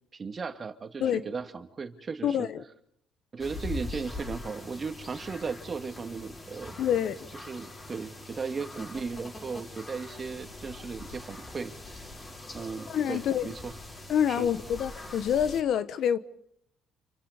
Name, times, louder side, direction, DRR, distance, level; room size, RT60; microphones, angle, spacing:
voice 1, 0.1-2.5 3.3-6.8 7.4-12.1 12.5-13.7 14.3-14.5, right 5 dB, 35° right, 2.4 m, -36 dB
voice 2, 2.2-2.6 6.8-7.2 12.9-13.5 14.1-16.2, left 9 dB, 65° left, 1.1 m, -27 dB
sound 1, 3.4-15.6, left 2 dB, 30° left, 6.9 m, -43 dB
28.5 x 25.0 x 5.2 m
supercardioid pair, 65°, 0 cm